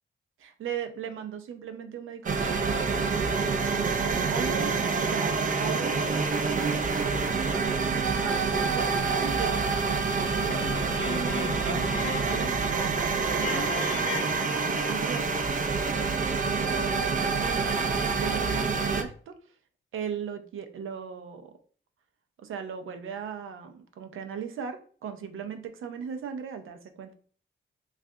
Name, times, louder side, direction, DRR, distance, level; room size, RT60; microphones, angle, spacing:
voice 1, 0.4-7.9 8.2-8.9 9.2-19.6 19.9-21.5 22.4-27.1, right 7 dB, 85° right, 7 dB, 0.6 m, -38 dB
sound 1, 2.3-19.0, right 4 dB, 40° right, 0.5 m, -27 dB
sound 2, 10.5-12.7 12.9-13.1 13.4-15.0, left 6 dB, 40° left, 0.5 m, -37 dB
3.2 x 2.4 x 3.7 m, 0.44 s
cardioid pair, 105°, 20 cm